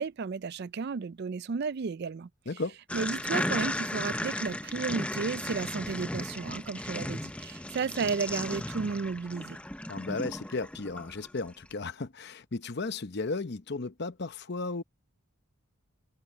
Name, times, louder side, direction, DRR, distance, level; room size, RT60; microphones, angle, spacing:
voice 1, 0.0-2.3 2.9-9.6, right 5 dB, 50° right, 0.4 m, -33 dB
voice 2, 2.5-2.8 9.9-14.8, left 3 dB, 50° left, 0.8 m, -35 dB
sound 1, 2.9-11.5, left 1 dB, 5° left, 0.6 m, -35 dB
head